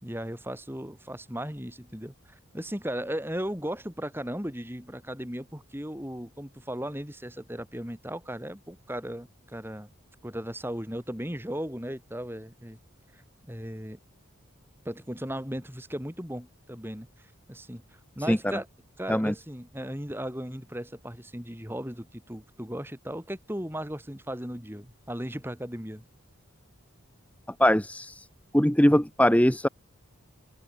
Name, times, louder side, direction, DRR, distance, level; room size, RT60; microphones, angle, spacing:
voice 1, 0.0-9.9 10.2-12.8 13.1-13.2 13.5-14.0 14.9-17.1 17.5-17.8 18.2-18.7 19.0-26.0, equal, 10° right, 3.8 m, -36 dB
voice 2, 27.6-28.2 28.5-29.7, equal, 5° left, 1.2 m, -21 dB
head